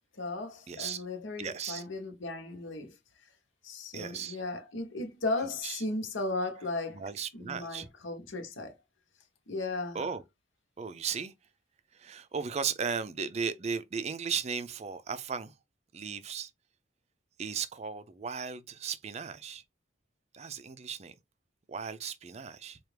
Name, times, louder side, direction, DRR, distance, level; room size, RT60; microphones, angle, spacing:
voice 1, 0.1-3.0 3.6-7.0 7.3-8.8 9.5-10.0, left 2 dB, 80° left, 1.0 m, -36 dB
voice 2, 0.7-1.0 1.4-1.8 3.9-4.4 5.6-5.8 6.9-7.9 9.9-10.2 10.8-11.3 11.9-15.5 15.9-16.5 17.4-19.6 20.3-21.2 21.7-22.8, right 6 dB, 35° right, 0.4 m, -36 dB
4.6 x 2.4 x 3.3 m
head